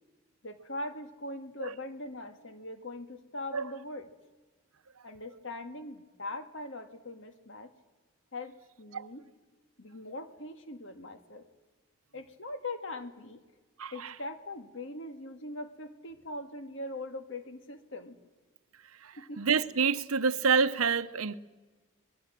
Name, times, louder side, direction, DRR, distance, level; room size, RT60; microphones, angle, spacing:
voice 1, 0.4-4.1 5.0-7.7 8.3-9.3 9.8-11.4 12.1-13.4 13.9-18.2 19.2-19.4, left 2 dB, 60° left, 1.8 m, -41 dB
voice 2, 13.8-14.1 19.0-21.3, right 5 dB, 80° right, 0.9 m, -28 dB
26.0 x 20.5 x 7.5 m
head